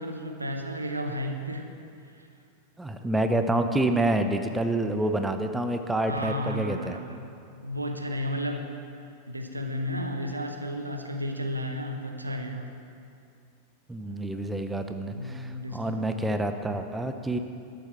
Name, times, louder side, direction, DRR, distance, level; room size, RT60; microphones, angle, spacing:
voice 1, 0.0-1.7 6.1-8.7 9.3-12.8 15.1-16.2, equal, 85° right, 4 dB, 1.0 m, -33 dB
voice 2, 2.8-7.0 13.9-17.4, right 1 dB, 10° right, 7 dB, 0.7 m, -28 dB
13.0 x 7.6 x 5.8 m, 2.4 s
figure-of-eight pair, 90°, 0 cm